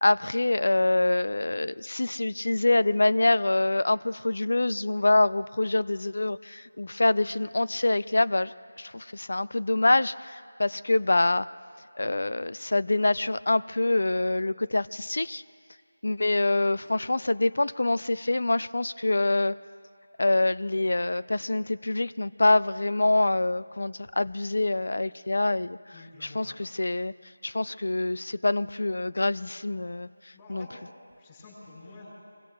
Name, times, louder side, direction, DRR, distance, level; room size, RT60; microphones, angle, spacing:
voice 1, 0.0-11.5 12.0-15.4 16.0-19.6 20.2-25.8 26.2-27.1 27.4-30.1 30.5-30.7, left 2 dB, 65° left, 16 dB, 0.4 m, -25 dB
voice 2, 25.9-26.6 30.3-32.1, left 2 dB, 20° left, -5 dB, 5.5 m, -48 dB
26.5 x 22.5 x 2.3 m, 2.3 s
figure-of-eight pair, 170°, 0 cm